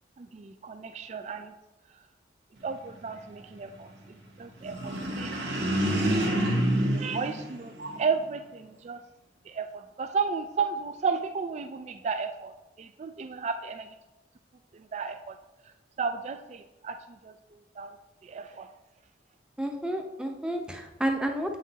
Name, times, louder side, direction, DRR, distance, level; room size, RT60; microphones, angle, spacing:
voice 1, 0.2-1.5 2.6-6.0 6.5-9.0 9.5-13.9 14.7-15.4 15.6-17.3 17.8-17.9 18.2-18.7, right 5 dB, 40° right, 7 dB, 0.3 m, -34 dB
sound 1, 4.6-8.2, right 1 dB, 75° right, 1.3 m, -28 dB
voice 2, 19.6-21.6, right 1 dB, 5° right, 3 dB, 0.7 m, -30 dB
8.2 x 5.8 x 2.8 m, 1.1 s
head